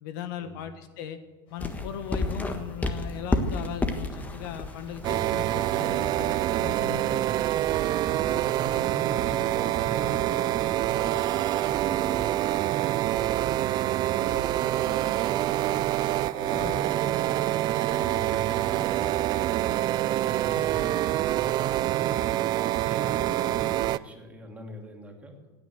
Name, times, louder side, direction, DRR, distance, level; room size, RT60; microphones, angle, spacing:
voice 1, 0.0-1.2 1.5-7.3 16.6-16.8 20.6-20.7 23.2-23.3, left 8 dB, 65° left, 10 dB, 1.4 m, -38 dB
sound 1, 1.5-19.3, left 3 dB, 50° left, 6.9 m, -56 dB
sound 2, 1.6-12.2, left 2 dB, 15° left, 1.5 m, -35 dB
sound 3, 5.0-24.0, right 14 dB, 35° right, 0.4 m, -26 dB
voice 2, 7.6-25.6, equal, 10° right, 1 dB, 3.0 m, -44 dB
16.5 x 9.2 x 8.0 m, 1.2 s
hypercardioid pair, 110°, 12 cm